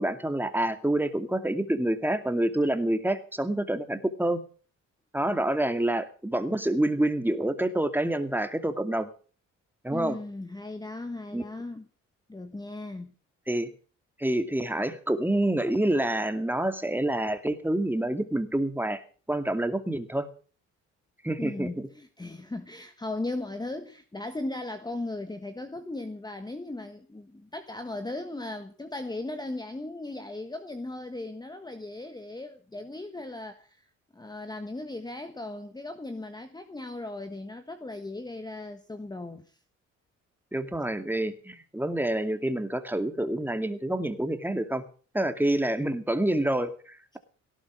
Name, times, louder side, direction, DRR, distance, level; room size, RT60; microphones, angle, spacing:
voice 1, 0.0-4.4 5.1-9.1 9.8-10.2 11.3-11.4 13.5-13.7 14.2-20.3 21.2-21.9 40.5-44.8 45.1-47.2, right 1 dB, 5° right, 2.4 m, -27 dB
voice 2, 9.9-11.9 12.3-13.1 21.4-33.9 34.1-39.6, left 2 dB, 15° left, 1.4 m, -37 dB
18.0 x 11.5 x 6.3 m
cardioid pair, 90°, 30 cm